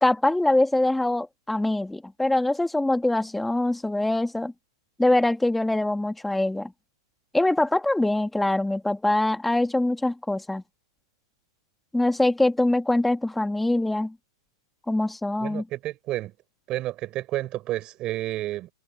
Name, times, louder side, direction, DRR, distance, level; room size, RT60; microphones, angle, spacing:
voice 1, 0.0-4.5 5.0-6.7 7.3-10.6 11.9-14.2 14.9-15.7, left 1 dB, 5° left, 2.4 m, -23 dB
voice 2, 15.4-16.3 16.7-18.7, right 15 dB, 35° right, 5.3 m, -30 dB
hypercardioid pair, 140°, 2 cm